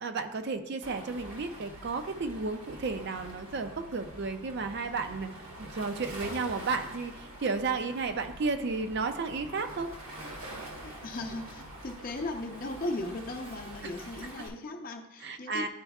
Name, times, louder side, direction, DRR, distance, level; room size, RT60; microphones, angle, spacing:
voice 1, 0.0-5.3 5.6-9.9 13.8-13.9 15.2-15.7, right 4 dB, 50° right, 8 dB, 0.5 m, -33 dB
Waves surf, 0.8-14.5, right 1 dB, 75° right, 1.3 m, -45 dB
voice 2, 10.8-15.7, left 2 dB, 40° left, 3 dB, 0.6 m, -37 dB
11.0 x 4.4 x 2.3 m, 0.94 s
head